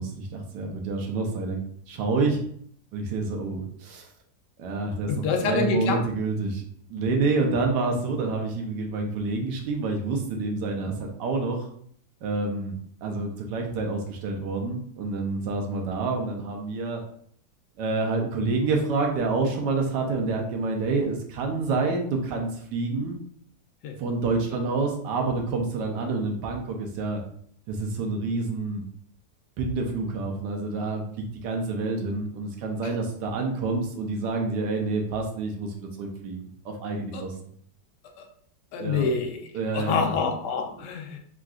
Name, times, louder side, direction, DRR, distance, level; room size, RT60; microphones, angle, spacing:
voice 1, 0.0-1.6 1.9-2.4 2.9-4.1 4.6-6.6 6.9-11.7 12.2-12.8 13.0-17.0 17.8-23.2 24.0-27.2 27.7-28.8 29.6-37.3 38.8-39.1 39.5-40.1, right 3 dB, 80° right, 2 dB, 1.2 m, -28 dB
voice 2, 5.1-6.0 23.8-24.0 32.8-32.9 37.1-37.2 38.2-38.3 38.7-41.2, left 5 dB, 80° left, 3 dB, 1.2 m, -27 dB
3.7 x 2.4 x 2.3 m, 0.62 s
omnidirectional pair, 1.8 m